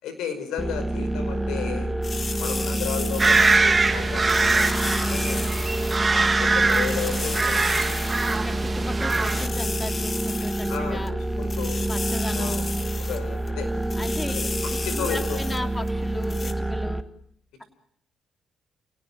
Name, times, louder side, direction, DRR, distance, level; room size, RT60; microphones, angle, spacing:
voice 1, 0.0-1.9 2.4-5.5 6.1-7.6 8.2-8.6 10.7-11.8 12.3-13.7 14.2-15.7, left 7 dB, 85° left, 10 dB, 5.2 m, -34 dB
sound 1, 0.6-17.0, right 1 dB, ahead, 1.8 m, -28 dB
sound 2, 2.0-3.9 4.2-6.0 6.3-6.4 6.6-8.4 8.7-8.8 9.0-11.1 11.4-13.2 13.5-13.6 13.8-15.6 15.9-16.0 16.2-16.5, left 4 dB, 40° left, 2.5 m, -34 dB
sound 3, 3.2-9.5, right 3 dB, 25° right, 2.6 m, -23 dB
voice 2, 8.3-11.1 11.9-12.6 14.0-14.3 14.9-17.0, left 1 dB, 15° left, 6 dB, 3.1 m, -35 dB
30.0 x 18.5 x 7.5 m, 0.68 s
cardioid pair, 80°, 0 cm